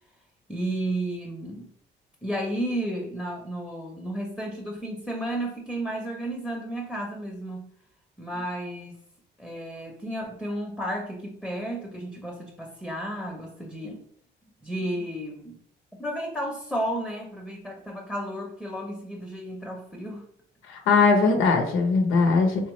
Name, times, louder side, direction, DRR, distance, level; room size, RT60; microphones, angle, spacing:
voice 1, 0.5-1.7 2.2-7.7 8.2-9.0 9.4-14.0 14.6-15.6 15.9-20.3, right 1 dB, 5° left, -1 dB, 0.7 m, -32 dB
voice 2, 20.7-22.7, left 4 dB, 90° left, 3 dB, 0.7 m, -20 dB
3.5 x 2.9 x 3.0 m, 0.65 s
cardioid pair, 90°, 20 cm